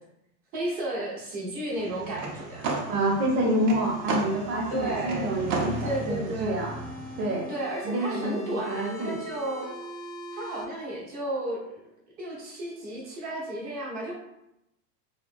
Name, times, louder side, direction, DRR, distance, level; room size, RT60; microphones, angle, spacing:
voice 1, 0.5-2.7 4.7-5.3 5.8-6.6 7.5-9.8 10.3-11.8 12.2-14.1, right 1 dB, 20° right, -3 dB, 0.3 m, -33 dB
sound 1, 1.7-7.2, right 3 dB, 90° right, 0.6 m, -34 dB
sound 2, 2.1-6.1 6.6-10.6, left 2 dB, 45° left, 0.5 m, -43 dB
voice 2, 2.9-6.8 7.2-7.5 7.8-9.2, right 1 dB, 55° right, -2 dB, 0.7 m, -28 dB
2.3 x 2.1 x 2.5 m, 0.85 s
supercardioid pair, 125°, 49 cm